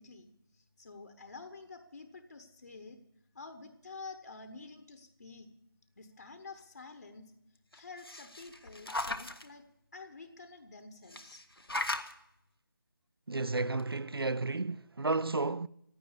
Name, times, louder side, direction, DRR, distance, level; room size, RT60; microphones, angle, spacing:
voice 1, 0.0-3.0 3.3-5.5 6.0-7.3 7.7-9.6 9.9-11.4, left 4 dB, 45° left, 1.2 m, -49 dB
sound 1, 7.7-9.5 11.1-12.1 13.4-13.5 13.8-13.9, left 1 dB, 85° left, 1.4 m, -38 dB
voice 2, 13.3-15.7, right 3 dB, 85° right, 0.5 m, -32 dB
15.5 x 10.0 x 6.9 m
figure-of-eight pair, 155°, 12 cm